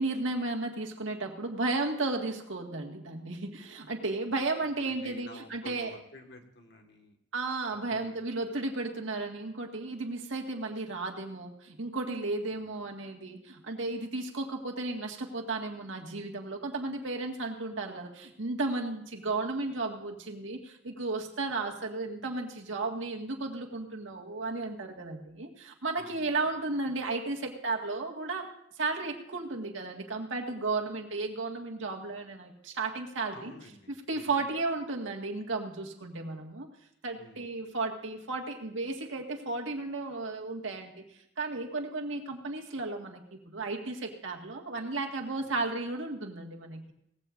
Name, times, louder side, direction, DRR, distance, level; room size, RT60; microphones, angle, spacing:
voice 1, 0.0-6.0 7.3-28.5 28.8-33.5 34.1-36.7 37.0-41.0 41.4-46.9, right 3 dB, 85° right, 1 dB, 1.9 m, -34 dB
voice 2, 4.3-7.2 7.9-8.1 12.5-12.7 26.0-26.3 33.3-34.5 37.2-37.5 45.4-45.6, left 1 dB, 60° left, 4 dB, 1.7 m, -51 dB
18.5 x 15.5 x 2.6 m, 0.76 s
head